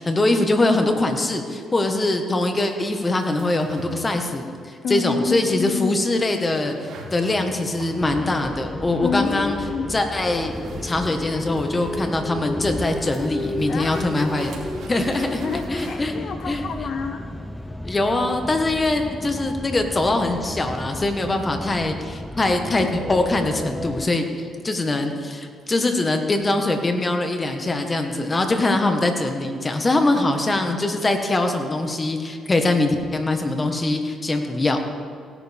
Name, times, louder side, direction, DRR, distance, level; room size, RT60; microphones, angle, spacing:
voice 1, 0.0-6.7 7.1-9.6 9.9-10.5 10.8-14.5 14.9-15.4 15.7-16.1 16.5-16.6 17.8-24.2 24.6-34.8, left 2 dB, 25° left, 5 dB, 1.5 m, -22 dB
sound 1, 3.2-17.7, right 3 dB, 70° right, 2.8 m, -44 dB
voice 2, 4.8-5.9 9.0-10.0 13.7-14.3 15.4-17.2, left 6 dB, 60° left, 7 dB, 0.6 m, -28 dB
sound 2, 8.0-24.1, equal, 5° left, 0.6 m, -33 dB
17.0 x 11.0 x 3.6 m, 2.3 s
cardioid pair, 90°, 0 cm